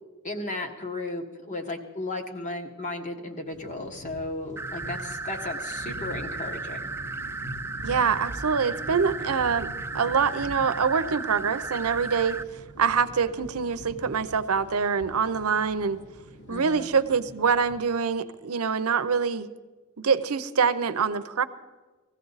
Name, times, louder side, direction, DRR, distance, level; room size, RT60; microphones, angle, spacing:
voice 1, 0.2-6.9 16.5-16.9, left 2 dB, 35° left, 5 dB, 1.3 m, -35 dB
sound 1, 3.5-17.8, right 1 dB, 55° left, 2.2 m, -44 dB
sound 2, 4.6-12.4, right 3 dB, 10° right, 0.4 m, -35 dB
voice 2, 7.8-12.4 12.8-16.0 16.5-19.5 20.0-21.4, right 6 dB, 90° right, 12 dB, 0.7 m, -25 dB
20.0 x 15.0 x 4.0 m, 1.3 s
head